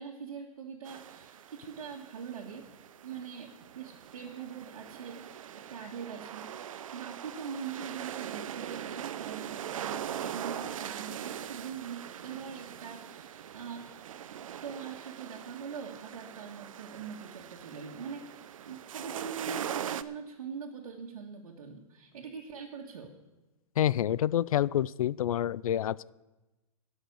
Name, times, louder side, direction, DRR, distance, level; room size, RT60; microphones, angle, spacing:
voice 1, 0.0-2.7 3.0-23.2, right 6 dB, 85° right, -1 dB, 1.9 m, -43 dB
sound 1, 0.9-20.0, right 10 dB, 70° right, 0.6 m, -41 dB
voice 2, 23.8-26.1, left 11 dB, 90° left, 22 dB, 0.4 m, -28 dB
13.0 x 6.5 x 9.5 m, 1.1 s
hypercardioid pair, 170°, 18 cm